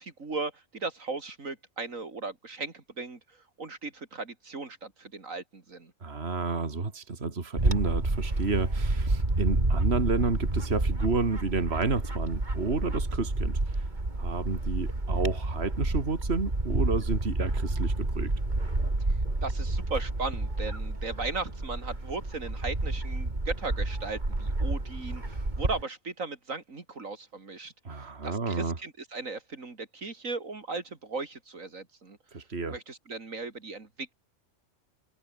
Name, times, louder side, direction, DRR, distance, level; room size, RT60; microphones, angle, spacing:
voice 1, 0.0-3.2 3.6-5.9 19.4-27.7 28.2-32.2 32.7-34.1, right 3 dB, 75° right, 3.4 m, -37 dB
voice 2, 6.0-13.8 14.2-18.3 27.8-28.8 32.3-32.8, right 3 dB, 50° right, 2.7 m, -30 dB
Bird / Wind, 7.6-25.8, right 2 dB, 35° right, 3.4 m, -29 dB
omnidirectional pair, 1.4 m